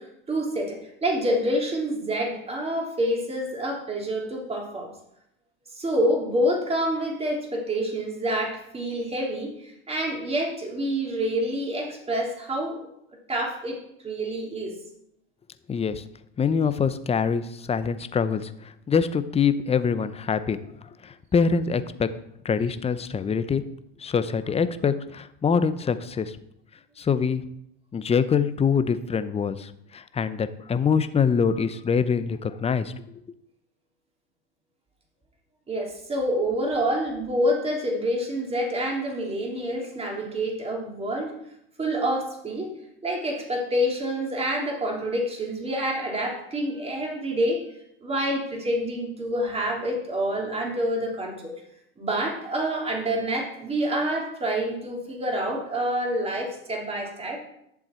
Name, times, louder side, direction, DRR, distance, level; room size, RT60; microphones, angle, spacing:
voice 1, 0.0-4.9 5.7-12.9 13.3-13.8 14.0-14.8 35.7-41.4 41.8-42.7 43.0-47.6 48.0-51.5 52.0-57.4, equal, 20° right, 0 dB, 3.0 m, -27 dB
voice 2, 15.7-16.0 16.4-20.6 21.0-22.1 22.4-23.6 24.0-26.3 27.0-27.4 27.9-32.9, left 6 dB, 20° left, 12 dB, 0.7 m, -24 dB
11.0 x 7.2 x 4.5 m, 0.77 s
hypercardioid pair, 95°, 32 cm